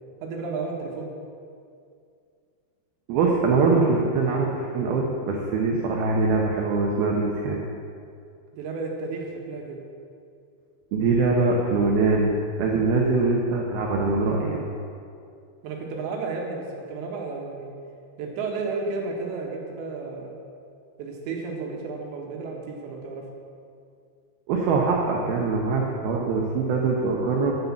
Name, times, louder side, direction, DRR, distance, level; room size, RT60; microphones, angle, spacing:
voice 1, 0.2-1.1 8.5-9.8 15.6-17.7 18.2-20.3 21.0-23.2, right 4 dB, 70° right, 0 dB, 3.3 m, -32 dB
voice 2, 3.1-7.6 10.9-14.6 24.5-27.6, right 3 dB, 85° right, -1 dB, 2.1 m, -23 dB
10.5 x 7.9 x 7.2 m, 2.4 s
omnidirectional pair, 6.0 m